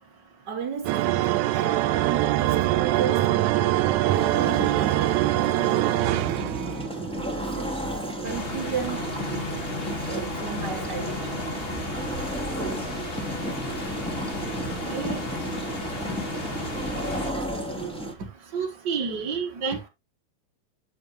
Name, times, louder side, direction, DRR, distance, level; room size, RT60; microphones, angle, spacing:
voice 1, 0.5-5.2 7.4-7.8 8.2-9.2 10.1-11.4 14.9-15.3, right 6 dB, 35° right, 2.0 m, -35 dB
sound 1, 0.9-6.9, right 15 dB, 80° right, 1.8 m, -23 dB
sound 2, 4.1-18.1, right 1 dB, ahead, 2.2 m, -33 dB
sound 3, 8.2-17.3, left 2 dB, 30° left, 1.1 m, -34 dB
voice 2, 14.8-15.2 18.5-19.9, right 5 dB, 60° right, 1.1 m, -29 dB
8.8 x 7.8 x 3.0 m
omnidirectional pair, 3.9 m